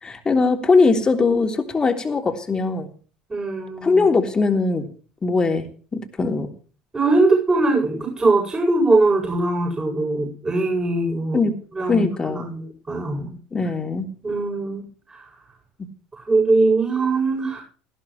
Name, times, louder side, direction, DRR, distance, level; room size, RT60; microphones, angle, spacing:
voice 1, 0.0-2.9 3.8-4.9 5.2-5.6 5.9-6.5 11.3-11.5 11.9-12.5 13.5-14.1, left 4 dB, 25° left, 4 dB, 3.3 m, -20 dB
voice 2, 3.3-4.0 6.9-11.4 11.8-13.4 14.2-14.8 16.3-17.6, right 2 dB, 25° right, 0 dB, 7.9 m, -21 dB
18.5 x 15.0 x 3.3 m, 0.40 s
hypercardioid pair, 65°, 3 cm